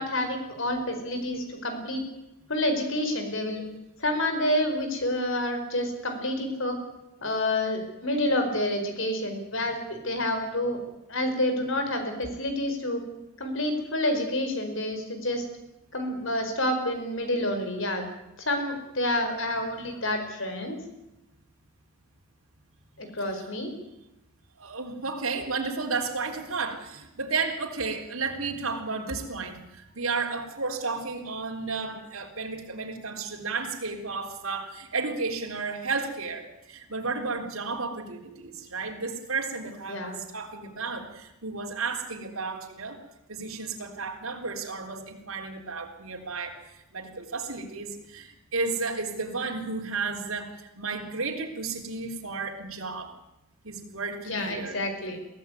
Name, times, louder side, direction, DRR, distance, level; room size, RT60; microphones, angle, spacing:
voice 1, 0.0-2.0 2.5-3.6 4.0-6.8 7.2-10.8 11.1-13.0 13.4-15.4 15.9-18.1 18.4-20.8 23.0-23.7 39.9-40.2 54.3-55.2, left 1 dB, 60° left, 6 dB, 4.8 m, -28 dB
voice 2, 24.6-43.0 43.3-53.1 53.6-54.8, right 4 dB, 80° right, 0 dB, 3.8 m, -33 dB
23.0 x 15.5 x 9.4 m, 0.94 s
head